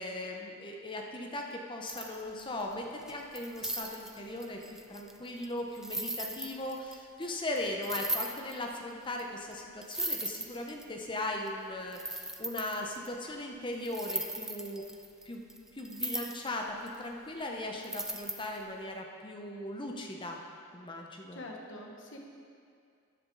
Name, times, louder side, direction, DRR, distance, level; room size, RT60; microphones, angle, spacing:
voice 1, 0.0-4.6 4.9-14.8 15.2-15.4 15.7-20.4 20.7-21.4, left 1 dB, 20° left, 1 dB, 0.8 m, -38 dB
sound 1, 1.9-2.6 3.1-7.0 7.2-7.3 7.6-7.7 7.8-8.6 9.2-9.3 9.5-9.6 9.8-10.8 11.5-11.6 11.9-13.1 13.8-16.5 16.9-17.0 17.8-18.6, right 1 dB, ahead, 0.3 m, -37 dB
voice 2, 21.3-22.2, left 1 dB, 60° left, 0 dB, 1.3 m, -44 dB
13.0 x 7.9 x 4.0 m, 2.3 s
head